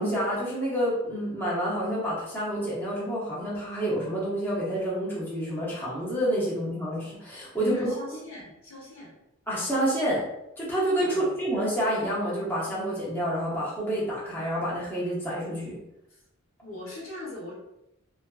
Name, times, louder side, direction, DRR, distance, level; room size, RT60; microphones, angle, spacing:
voice 1, 0.0-7.9 9.5-10.2 10.6-15.8, equal, 10° left, -8 dB, 0.6 m, -28 dB
voice 2, 7.7-9.1 11.0-11.3 16.1-16.2 16.6-17.5, left 2 dB, 70° left, -4 dB, 0.8 m, -41 dB
2.5 x 2.2 x 2.3 m, 0.85 s
head